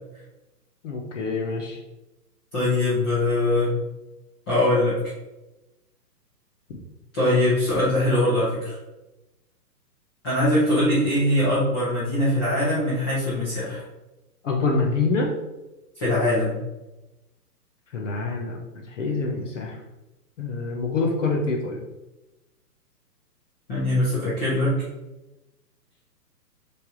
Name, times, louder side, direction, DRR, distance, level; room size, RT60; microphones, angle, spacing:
voice 1, 0.8-1.8 14.4-15.3 17.9-19.8 20.4-21.8, left 3 dB, 50° left, 1 dB, 0.8 m, -26 dB
voice 2, 2.5-3.7 4.5-5.0 7.1-8.8 10.2-13.8 16.0-16.6 23.7-24.8, left 1 dB, 15° left, -10 dB, 0.7 m, -22 dB
4.3 x 3.4 x 3.7 m, 1.0 s
hypercardioid pair, 150°, 49 cm